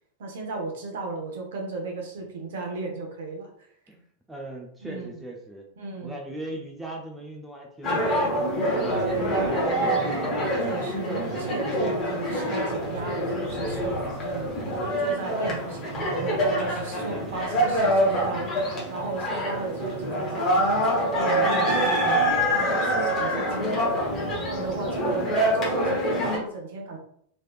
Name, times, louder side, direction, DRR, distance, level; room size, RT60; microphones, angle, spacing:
voice 1, 0.2-3.7 4.8-5.2 5.8-6.2 8.8-9.4 10.5-14.5 15.0-24.0 24.4-25.2 25.5-27.0, right 3 dB, 55° right, 1 dB, 0.8 m, -35 dB
voice 2, 4.3-5.6 6.0-10.5 24.9-25.4, right 1 dB, 10° right, -1 dB, 0.6 m, -39 dB
sound 1, 7.8-26.4, equal, 30° left, 1.0 m, -25 dB
3.2 x 3.1 x 2.4 m, 0.66 s
figure-of-eight pair, 90°, 0 cm